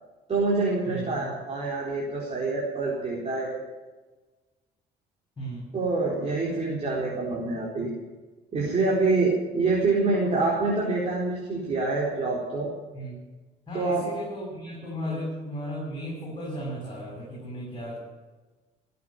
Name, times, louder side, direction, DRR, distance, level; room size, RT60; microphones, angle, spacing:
voice 1, 0.3-3.6 5.7-7.9 8.5-12.7 13.7-14.0 15.1-15.2, right 3 dB, 35° right, -4 dB, 4.1 m, -26 dB
voice 2, 0.9-1.3 5.4-5.7 12.9-13.2 13.7-18.0, equal, 25° left, -4 dB, 7.7 m, -35 dB
17.5 x 8.5 x 9.5 m, 1.2 s
cardioid pair, 110°, 17 cm